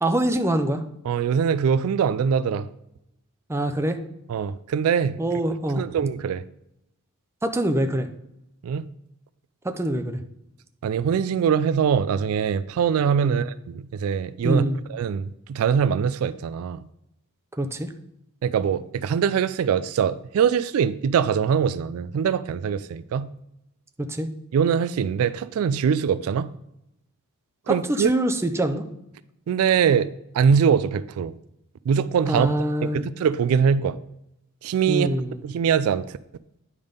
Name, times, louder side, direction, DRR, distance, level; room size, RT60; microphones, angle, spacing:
voice 1, 0.0-0.8 3.5-4.0 5.2-5.8 7.4-8.1 9.6-10.2 13.2-13.4 14.4-14.8 17.6-17.9 24.0-24.3 27.7-28.8 32.3-33.1 34.9-35.4, right 1 dB, 10° right, 0.5 m, -24 dB
voice 2, 1.1-2.7 4.3-5.2 5.8-6.4 8.6-8.8 10.8-14.6 14.9-16.8 18.4-23.3 24.5-26.5 27.7-28.1 29.5-30.1 30.3-31.3 31.9-32.5 32.8-34.0 34.6-35.1 35.4-36.1, right 7 dB, 70° right, 0.3 m, -22 dB
9.7 x 3.6 x 5.1 m
head